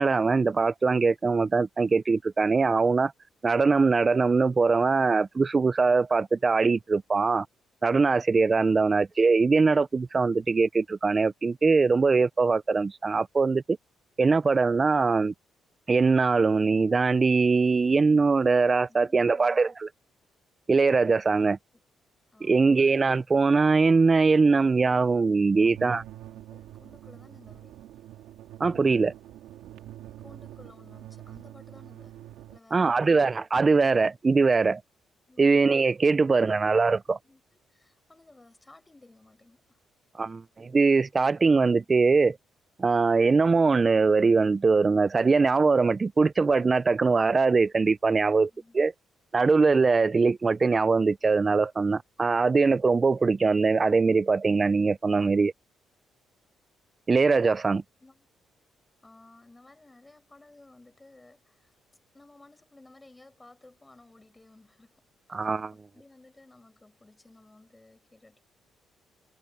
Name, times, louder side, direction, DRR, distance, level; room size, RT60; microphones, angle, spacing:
voice 1, 0.0-3.1 3.4-7.5 7.8-13.8 14.2-15.3 15.9-19.9 20.7-21.6 22.4-26.0 28.6-29.1 32.7-34.8 35.4-37.2 40.2-42.4 42.8-48.5 48.7-48.9 49.3-55.5 57.1-57.8 65.3-65.7, right 4 dB, 30° right, 0.4 m, -22 dB
voice 2, 18.9-19.8 22.3-22.9 25.5-25.8 26.5-27.8 30.2-32.2 32.5-33.2 35.3-35.5 36.3-36.6 37.0-39.8 48.3-48.8 58.0-58.3 59.0-61.7 62.1-65.1 65.7-68.4, left 2 dB, 15° left, 5.7 m, -55 dB
sound 1, 25.7-32.6, right 13 dB, 90° right, 2.2 m, -45 dB
cardioid pair, 90°, 0 cm